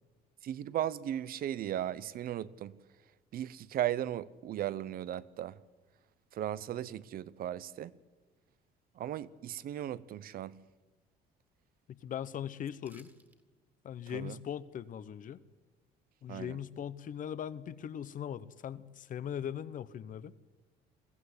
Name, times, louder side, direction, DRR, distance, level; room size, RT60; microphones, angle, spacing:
voice 1, 0.4-2.7 3.3-5.6 6.3-7.9 8.9-10.6 14.1-14.4 16.3-16.6, right 11 dB, 60° right, 0.8 m, -36 dB
voice 2, 11.9-13.1 13.8-15.4 16.2-20.3, left 9 dB, 50° left, 1.0 m, -40 dB
sound 1, 12.8-13.4 13.7-13.8, right 1 dB, 10° right, 2.2 m, -62 dB
22.5 x 15.5 x 9.7 m
cardioid pair, 110°, 17 cm